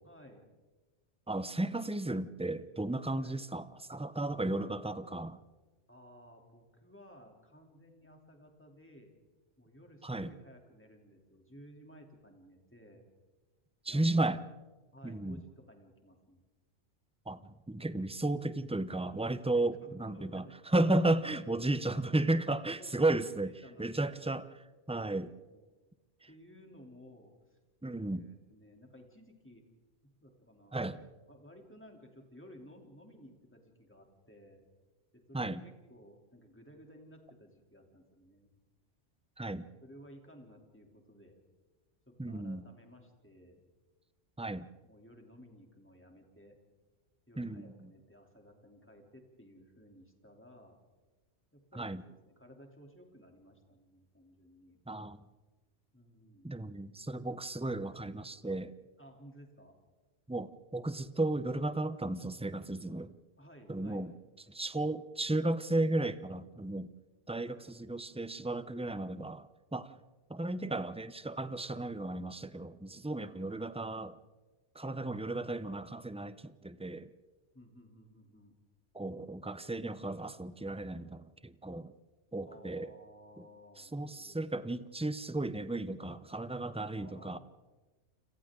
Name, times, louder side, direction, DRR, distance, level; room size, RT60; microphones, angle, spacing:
voice 1, 0.0-0.5 3.1-3.4 5.9-9.1 9.6-13.0 13.9-14.4 14.9-16.4 19.5-20.5 22.8-24.1 25.5-25.6 26.3-27.6 28.1-29.6 30.2-30.8 31.3-34.6 35.1-38.5 39.6-41.4 42.1-43.6 44.8-46.6 47.3-50.8 51.5-54.8 55.9-56.6 59.0-59.8 63.4-64.0 67.4-67.8 73.3-73.7 77.5-78.5 82.4-84.4 86.9-87.4, equal, 10° left, 3.1 m, -56 dB
voice 2, 1.3-5.4 10.0-10.3 13.8-14.4 15.0-15.4 17.3-23.5 23.8-25.3 27.8-28.3 30.7-31.0 35.3-35.6 39.4-39.7 42.2-42.6 44.4-44.7 47.4-47.9 51.7-52.0 54.9-55.2 56.4-58.7 60.3-63.1 63.7-64.1 64.5-66.9 67.3-69.9 70.3-74.2 74.7-77.1 78.9-81.9 82.3-82.9 83.8-87.4, right 2 dB, 10° right, 0.4 m, -34 dB
29.5 x 27.0 x 3.8 m
omnidirectional pair, 1.2 m